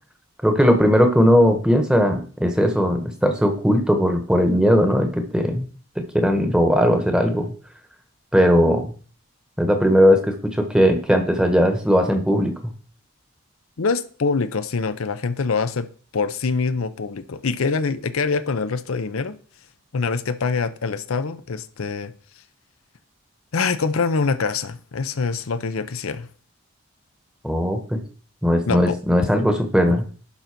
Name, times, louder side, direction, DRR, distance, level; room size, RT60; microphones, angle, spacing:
voice 1, 0.4-5.7 6.0-7.5 8.3-8.9 9.6-12.7 27.4-28.0 28.4-30.0, equal, 5° right, 6 dB, 1.1 m, -18 dB
voice 2, 13.8-15.9 16.1-19.4 19.9-22.1 23.5-26.3 28.7-29.0 29.9-30.0, left 4 dB, 80° left, 12 dB, 0.6 m, -24 dB
11.5 x 4.0 x 5.9 m, 0.42 s
head